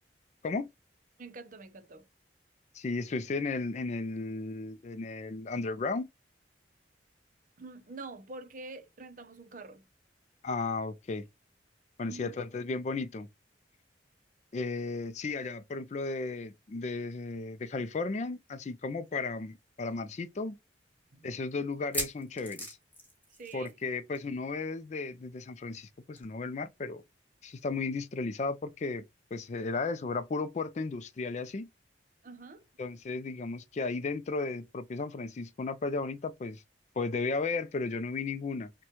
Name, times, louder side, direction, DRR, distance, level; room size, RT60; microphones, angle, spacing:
voice 1, 1.2-2.1 7.6-9.9 12.0-12.4 21.1-21.4 23.4-23.7 32.2-32.7, right 3 dB, 45° right, 0.6 m, -46 dB
voice 2, 2.7-6.1 10.4-11.3 12.0-13.3 14.5-20.6 21.2-22.8 23.5-27.0 27.4-29.0 29.3-31.7 32.8-36.6 37.0-38.7, left 3 dB, 40° left, 0.4 m, -34 dB
sound 1, 19.1-19.2 19.5-19.6 20.2-20.3 21.7-23.9 24.1-24.3 24.6-24.7 26.2-26.3, equal, 10° left, 1.6 m, -39 dB
6.0 x 2.2 x 2.9 m
head